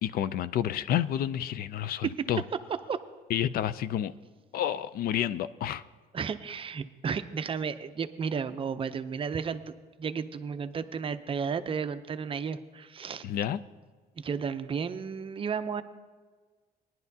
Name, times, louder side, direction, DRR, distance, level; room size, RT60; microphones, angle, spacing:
voice 1, 0.0-2.4 3.3-4.1 4.5-5.8 13.2-13.6, left 10 dB, 60° left, 15 dB, 0.4 m, -29 dB
voice 2, 6.1-9.6 10.0-13.3 14.2-15.8, right 6 dB, 30° right, 11 dB, 0.5 m, -33 dB
18.0 x 10.5 x 2.7 m, 1.5 s
cardioid pair, 110°, 17 cm